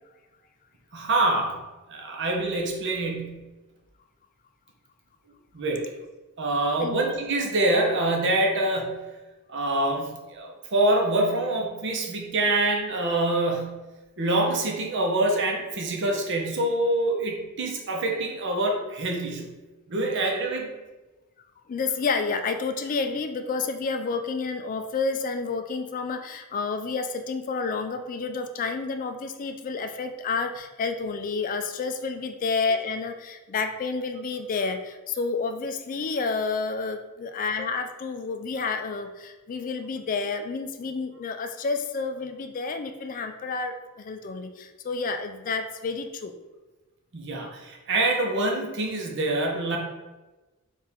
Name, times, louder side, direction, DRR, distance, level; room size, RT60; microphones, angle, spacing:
voice 1, 0.9-1.6 1.9-3.5 5.5-5.8 6.4-9.0 9.5-13.9 14.2-19.6 19.9-20.7 47.1-49.8, right 2 dB, 55° right, 1 dB, 0.8 m, -25 dB
voice 2, 21.7-46.3, left 4 dB, 40° left, 7 dB, 0.3 m, -30 dB
4.4 x 2.5 x 3.4 m, 1.2 s
head